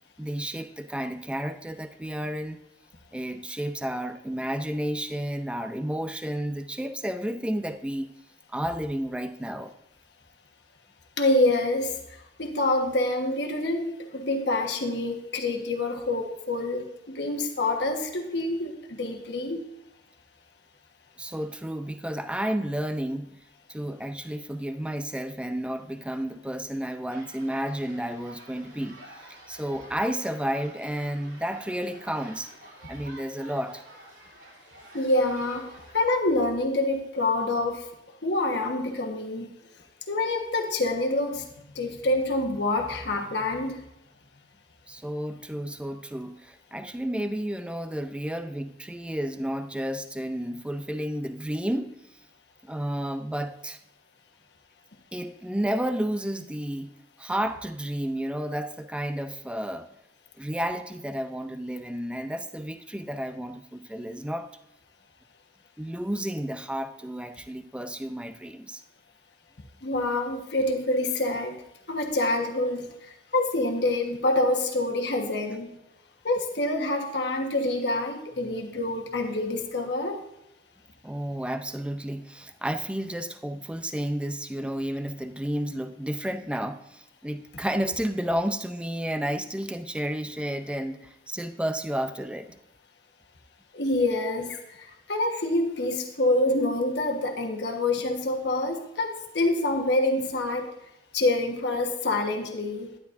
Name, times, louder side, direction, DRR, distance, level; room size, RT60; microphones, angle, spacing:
voice 1, 0.2-2.6 3.1-8.1 8.5-9.8 21.2-23.4 23.7-32.5 32.9-33.8 44.9-52.2 52.6-53.8 55.1-56.9 57.2-59.9 60.4-64.5 65.8-68.8 81.0-92.6, equal, 5° right, 0.5 m, -31 dB
voice 2, 11.2-11.9 12.4-19.6 34.9-37.9 38.2-39.5 40.1-41.4 41.7-43.8 69.8-71.6 71.9-72.9 73.3-75.7 76.2-80.2 93.7-100.7 101.1-102.9, left 2 dB, 65° left, 1.3 m, -26 dB
sound 1, 27.1-35.9, right 1 dB, 70° right, 3.0 m, -49 dB
12.0 x 10.0 x 2.6 m
head